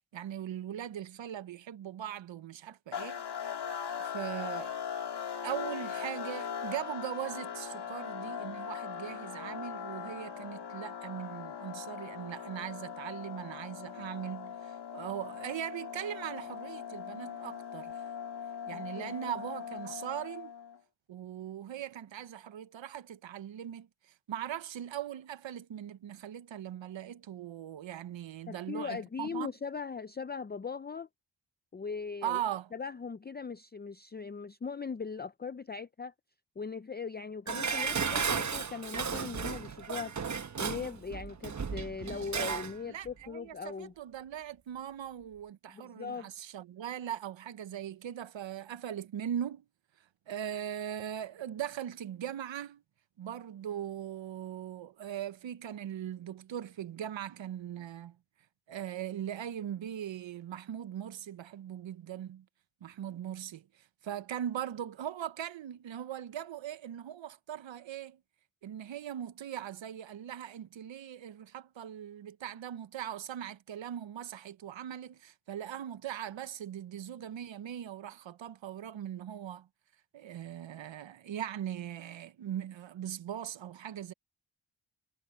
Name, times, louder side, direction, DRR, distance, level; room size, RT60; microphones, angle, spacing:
voice 1, 0.1-3.2 4.0-4.7 5.4-18.0 18.7-20.5 21.1-23.9 24.3-29.5 32.2-32.7 42.9-49.6 50.3-52.8 53.2-58.2 58.7-62.4 62.8-63.7 64.0-68.2 68.6-79.7 80.1-84.1, right 10 dB, 85° right, 0.9 m, -40 dB
sound 1, 2.9-20.8, left 7 dB, 65° left, 1.9 m, -40 dB
voice 2, 18.7-19.3 28.5-31.1 31.7-32.4 32.7-36.1 36.6-40.2 40.6-43.9 45.7-46.3, left 5 dB, 25° left, 0.5 m, -40 dB
Dishes pots and pans, 37.5-42.8 43.1-43.2, right 6 dB, 40° right, 1.0 m, -34 dB
wide cardioid pair, 105°, 44 cm